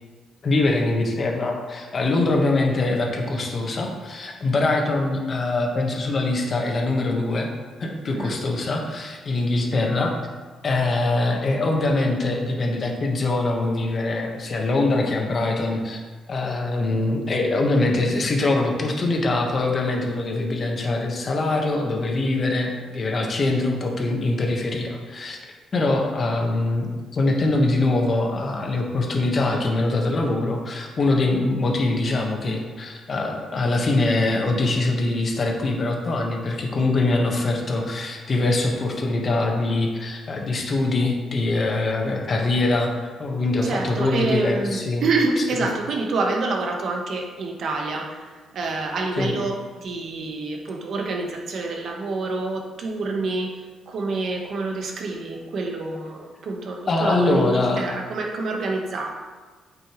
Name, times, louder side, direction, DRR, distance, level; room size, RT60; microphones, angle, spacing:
voice 1, 0.4-7.5 7.8-10.1 10.6-16.0 16.3-25.4 25.7-45.0 49.2-49.3 56.9-57.9, left 2 dB, 45° left, 1 dB, 1.3 m, -23 dB
voice 2, 43.6-59.1, right 3 dB, 60° right, 1 dB, 1.2 m, -27 dB
8.8 x 5.4 x 3.1 m, 1.4 s
cardioid pair, 90°, 0 cm